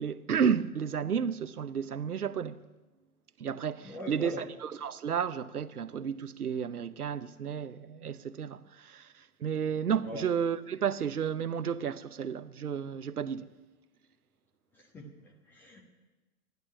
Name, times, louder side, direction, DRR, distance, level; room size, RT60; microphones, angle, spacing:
voice 1, 0.0-2.6 3.4-13.5, right 7 dB, 75° right, 0.8 m, -32 dB
voice 2, 3.8-4.4 10.0-10.2 14.8-15.1 15.5-15.9, left 1 dB, 5° left, 0.4 m, -41 dB
13.5 x 10.5 x 8.6 m
figure-of-eight pair, 115°, 45 cm